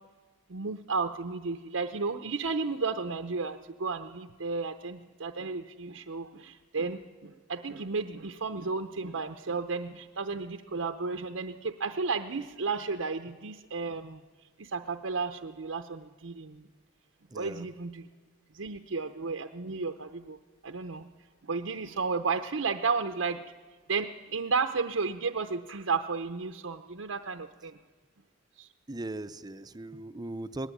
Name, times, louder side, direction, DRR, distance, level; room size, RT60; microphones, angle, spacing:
voice 1, 0.5-14.2 14.6-16.7 17.3-18.1 18.5-20.4 20.6-21.1 21.4-23.4 23.9-27.8 28.6-28.7, right 4 dB, 80° right, 6 dB, 0.8 m, -33 dB
voice 2, 17.3-17.7 28.9-30.7, right 2 dB, 20° right, 12 dB, 0.6 m, -39 dB
19.5 x 16.5 x 9.9 m, 1.4 s
head